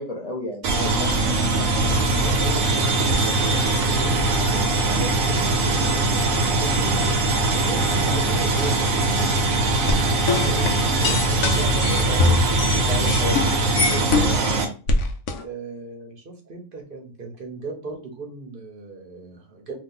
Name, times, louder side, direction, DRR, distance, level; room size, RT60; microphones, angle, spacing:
voice 1, 0.0-1.2 11.9-12.2 12.9-14.3, left 1 dB, 60° left, -1 dB, 0.4 m, -32 dB
sound 1, 0.6-14.7, right 2 dB, 80° right, 1.1 m, -21 dB
voice 2, 0.8-2.7 3.0-5.6 6.0-10.1 10.4-12.5 14.2-14.7 15.4-19.8, right 4 dB, 50° right, 1 dB, 0.8 m, -37 dB
sound 2, 9.9-14.5 14.9-15.4, left 3 dB, 80° left, 1.0 m, -23 dB
2.8 x 2.4 x 3.7 m, 0.36 s
omnidirectional pair, 1.4 m